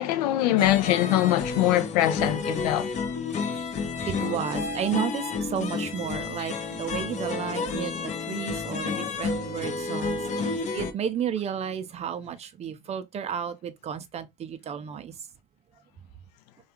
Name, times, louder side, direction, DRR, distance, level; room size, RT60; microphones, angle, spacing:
voice 1, 0.0-2.9 6.4-6.5 7.8-7.9, left 14 dB, 85° left, 0.4 m, -23 dB
sound 1, 0.6-10.9, left 4 dB, 35° left, 0.6 m, -31 dB
voice 2, 4.1-15.1, right 8 dB, 35° right, 0.5 m, -32 dB
2.3 x 2.3 x 2.8 m
supercardioid pair, 90°, 20 cm